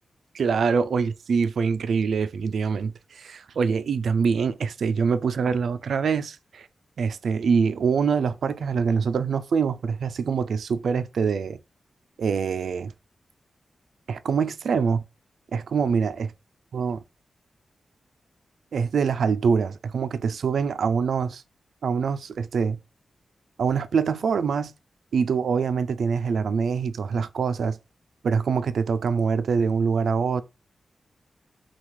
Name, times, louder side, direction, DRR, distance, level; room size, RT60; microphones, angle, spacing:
voice 1, 0.3-6.7 7.0-11.6 12.2-12.9 14.1-15.0 15.5-16.3 16.7-17.0 18.7-21.4 21.8-22.8 23.6-24.7 25.1-27.8 28.2-30.4, right 6 dB, 75° right, 0.3 m, -24 dB
5.9 x 2.3 x 3.1 m
wide cardioid pair, 170°, 0 cm